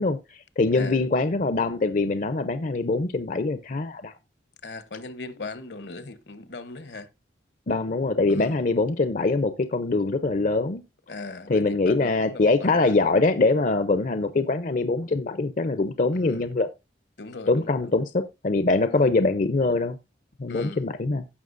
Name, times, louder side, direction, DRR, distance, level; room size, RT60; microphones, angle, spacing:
voice 1, 0.0-4.1 7.7-10.8 11.5-16.7 17.5-20.0 20.4-21.2, left 3 dB, 45° left, 0.6 m, -23 dB
voice 2, 4.6-7.1 8.3-8.6 11.1-12.9 16.1-16.4 17.2-17.9 18.8-19.0 20.5-20.8, left 3 dB, 70° left, 0.9 m, -38 dB
16.0 x 5.8 x 2.5 m
head